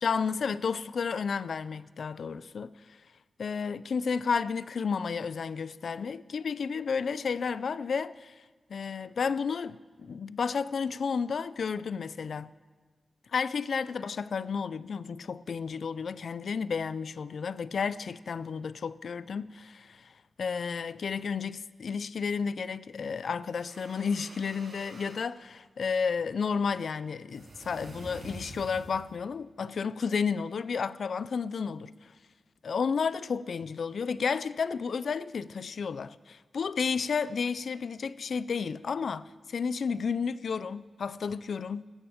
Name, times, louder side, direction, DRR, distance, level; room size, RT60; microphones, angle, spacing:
voice 1, 0.0-2.7 3.4-8.4 8.7-12.5 13.3-20.1 20.4-31.9 32.6-41.8, left 5 dB, 70° left, 0.4 m, -32 dB
sound 1, 23.4-25.2 27.3-29.2, right 2 dB, 75° right, 4.8 m, -47 dB
16.0 x 13.5 x 5.1 m
wide cardioid pair, 145°, 0 cm